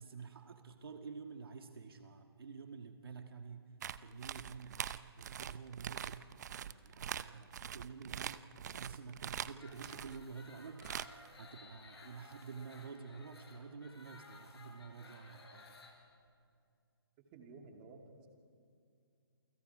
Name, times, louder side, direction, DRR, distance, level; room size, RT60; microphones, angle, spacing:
voice 1, 0.0-3.6 4.0-4.8 5.2-6.2 6.6-8.5 8.8-10.9 11.4-15.8, right 5 dB, 65° right, 5 dB, 1.7 m, -49 dB
sound 1, 3.8-10.2 10.8-11.3 12.3-12.4, right 9 dB, 45° right, 0.6 m, -43 dB
sound 2, 9.6-15.9, left 3 dB, 75° left, 6.4 m, -57 dB
voice 2, 17.2-18.3, right 3 dB, 25° right, 2 dB, 2.7 m, -54 dB
28.5 x 25.0 x 5.0 m, 2.4 s
hypercardioid pair, 155°, 13 cm